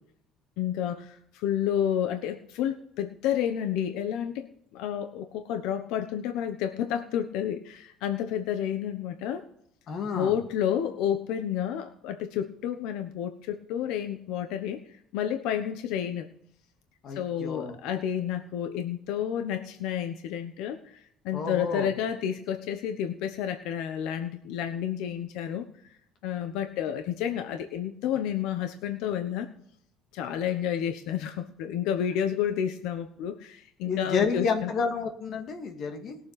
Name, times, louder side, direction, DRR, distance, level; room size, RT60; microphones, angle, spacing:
voice 1, 0.6-4.5 4.7-9.4 10.2-14.8 15.1-16.3 17.1-25.6 26.2-29.5 30.1-34.7, left 9 dB, 75° left, 7 dB, 1.0 m, -30 dB
voice 2, 9.9-10.3 17.0-17.8 21.3-21.9 33.8-36.2, left 5 dB, 45° left, 4 dB, 2.1 m, -30 dB
20.5 x 7.3 x 4.1 m, 0.70 s
cardioid pair, 165°, 0 cm